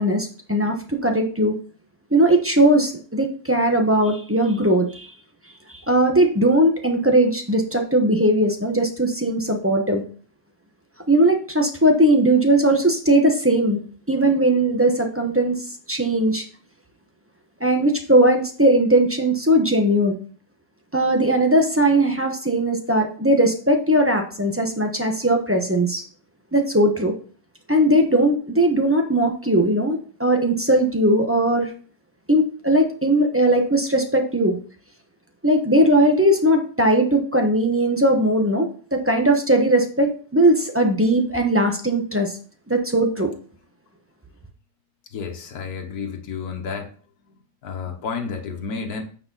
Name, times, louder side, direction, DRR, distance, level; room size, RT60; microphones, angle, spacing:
voice 1, 0.0-1.5 2.1-5.1 5.7-10.0 11.1-13.8 14.1-15.6 15.9-16.4 17.6-20.1 20.9-26.0 26.5-27.1 27.7-31.7 32.3-34.6 35.4-42.3 42.7-43.3, right 1 dB, 10° right, 3 dB, 0.9 m, -19 dB
voice 2, 45.1-46.9 47.6-49.0, left 5 dB, 75° left, 3 dB, 1.6 m, -31 dB
8.5 x 4.8 x 4.0 m, 0.42 s
omnidirectional pair, 1.6 m